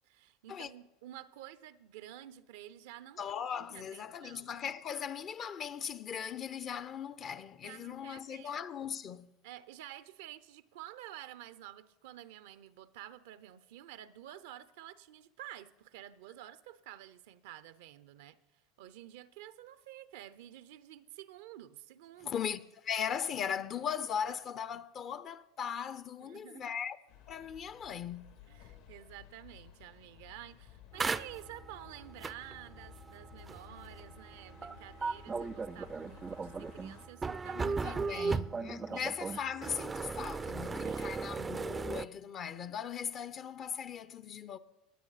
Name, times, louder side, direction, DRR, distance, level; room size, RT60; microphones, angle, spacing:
voice 1, 0.0-3.2 3.5-4.5 7.6-8.5 9.4-18.4 18.8-22.4 26.2-26.6 28.5-38.5 38.9-39.4 40.8-41.2, right 13 dB, 70° right, 0.5 m, -50 dB
voice 2, 3.2-9.3 22.2-27.0 27.3-28.4 37.5-44.6, left 8 dB, 40° left, 0.6 m, -39 dB
sound 1, 27.1-37.1, left 9 dB, 80° left, 1.9 m, -56 dB
sound 2, 31.0-42.1, right 4 dB, 20° right, 0.4 m, -37 dB
20.5 x 8.4 x 4.1 m
hypercardioid pair, 85°, 0 cm